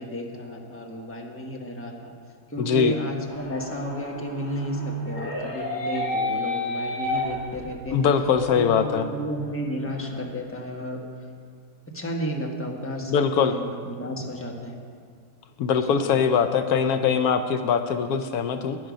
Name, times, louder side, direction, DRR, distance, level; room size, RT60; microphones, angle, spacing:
voice 1, 0.0-2.1 2.5-8.1 8.5-11.0 11.9-14.8 15.8-16.1, equal, 10° left, 0 dB, 1.2 m, -33 dB
voice 2, 2.6-2.9 7.9-9.1 13.1-13.5 15.6-18.8, left 6 dB, 80° left, 8 dB, 1.1 m, -22 dB
sound 1, 3.3-7.9 8.3-8.4 8.9-9.0 9.3-10.6, left 1 dB, 45° left, 2.6 m, -31 dB
12.5 x 10.0 x 5.2 m, 2.2 s
omnidirectional pair, 1.6 m